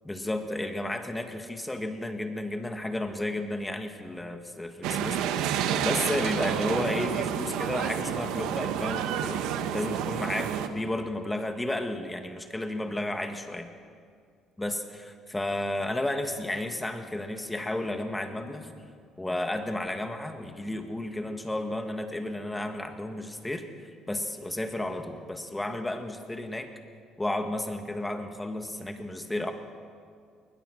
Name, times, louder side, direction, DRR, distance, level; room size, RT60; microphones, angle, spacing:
voice 1, 0.1-9.4 9.7-13.7 14.6-14.8 15.3-18.8 19.2-23.6 24.1-26.7 27.2-29.5, left 1 dB, 10° left, 6 dB, 1.8 m, -32 dB
sound 1, 4.8-10.7, right 9 dB, 85° right, 1.3 m, -29 dB
21.0 x 20.0 x 6.4 m, 2.2 s
cardioid pair, 115°, 0 cm